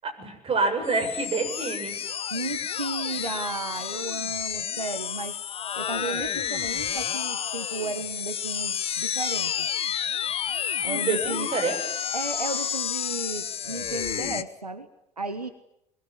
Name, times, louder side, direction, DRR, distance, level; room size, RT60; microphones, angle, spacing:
voice 1, 0.0-2.0 10.8-11.8, right 3 dB, 30° right, 7 dB, 7.4 m, -27 dB
sound 1, 0.8-14.4, left 9 dB, 30° left, 1.2 m, -30 dB
voice 2, 2.3-5.3 5.8-9.7 10.8-11.5 12.1-14.9 15.2-15.5, right 3 dB, 85° right, 10 dB, 1.4 m, -34 dB
25.5 x 22.0 x 9.8 m, 0.79 s
figure-of-eight pair, 70°, 19 cm